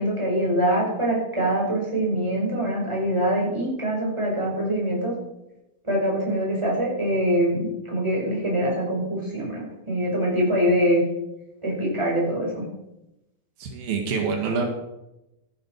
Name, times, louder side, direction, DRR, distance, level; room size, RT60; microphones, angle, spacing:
voice 1, 0.0-5.1 5.8-11.0 11.6-12.6, equal, 5° right, -3 dB, 5.7 m, -24 dB
voice 2, 13.6-14.6, right 5 dB, 75° right, 3 dB, 3.7 m, -26 dB
14.0 x 12.0 x 4.8 m, 0.90 s
omnidirectional pair, 4.3 m